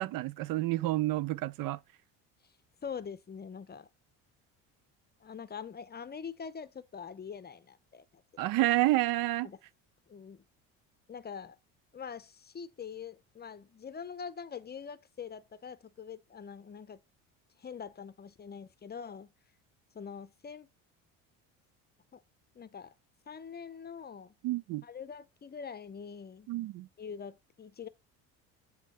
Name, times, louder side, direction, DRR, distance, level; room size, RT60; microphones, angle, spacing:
voice 1, 0.0-1.8 8.4-9.5 24.4-24.8 26.5-26.9, right 16 dB, 60° right, 0.5 m, -29 dB
voice 2, 2.8-3.9 5.2-8.2 9.4-9.6 10.1-10.4 11.1-11.6 11.9-17.0 17.6-19.3 19.9-20.7 22.1-22.2 22.5-22.9 23.3-24.3 24.8-26.5 27.0-27.9, left 6 dB, 25° left, 0.7 m, -44 dB
8.2 x 3.4 x 5.5 m
supercardioid pair, 85°, 39 cm